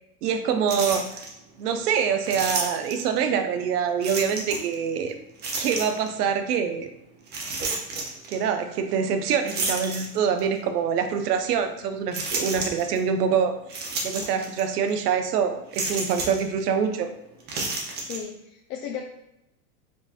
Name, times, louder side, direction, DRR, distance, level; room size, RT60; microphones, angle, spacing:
voice 1, 0.2-1.1 1.6-5.1 5.6-6.9 8.3-13.5 14.0-17.1, right 7 dB, 80° right, 7 dB, 0.7 m, -25 dB
sound 1, 0.7-1.3 2.2-3.2 4.0-4.7 5.4-6.1 7.3-8.4 9.5-10.5 11.1-11.2 12.1-13.0 13.7-14.6 14.9-15.0 15.7-16.4 17.4-18.2, right 3 dB, 20° right, 0.5 m, -30 dB
voice 2, 18.0-19.0, left 7 dB, 75° left, 0 dB, 0.6 m, -35 dB
4.6 x 2.6 x 2.4 m, 0.85 s
supercardioid pair, 135°, 46 cm